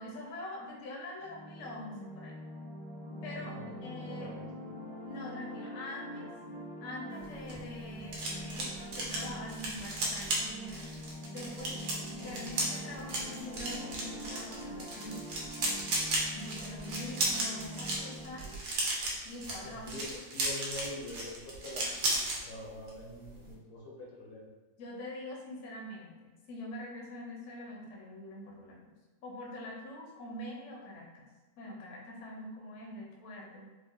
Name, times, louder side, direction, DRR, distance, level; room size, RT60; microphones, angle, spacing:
voice 1, 0.0-2.3 3.2-4.4 5.1-6.3 6.8-11.7 12.2-15.4 16.3-18.6 19.2-20.0 24.8-28.9 29.2-31.3 31.6-33.7, left 1 dB, 65° left, -3 dB, 0.7 m, -44 dB
sound 1, 1.2-18.6, equal, 90° right, 0.7 m, -44 dB
voice 2, 3.4-4.5 19.6-24.5, left 1 dB, 85° left, -1 dB, 1.5 m, -45 dB
sound 2, 7.2-22.4 22.7-23.0 23.2-23.5, right 2 dB, 70° right, 1.3 m, -35 dB
4.4 x 2.2 x 2.5 m, 1.2 s
omnidirectional pair, 2.1 m